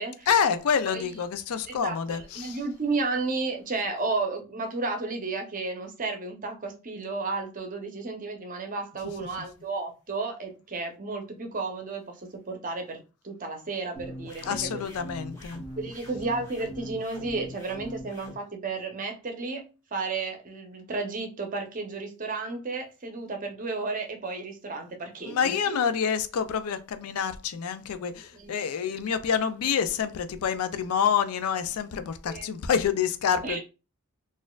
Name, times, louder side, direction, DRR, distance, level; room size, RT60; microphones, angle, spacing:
voice 1, 0.3-2.6 14.5-15.6 25.3-33.6, left 7 dB, 75° left, 0.4 m, -27 dB
voice 2, 1.7-13.0 13.2-14.8 15.8-19.6 19.9-25.8 28.3-28.6 32.3-32.5 33.4-33.6, right 3 dB, 35° right, 0.7 m, -33 dB
sound 1, 14.0-18.4, equal, 15° left, 0.9 m, -41 dB
4.1 x 2.5 x 2.3 m
head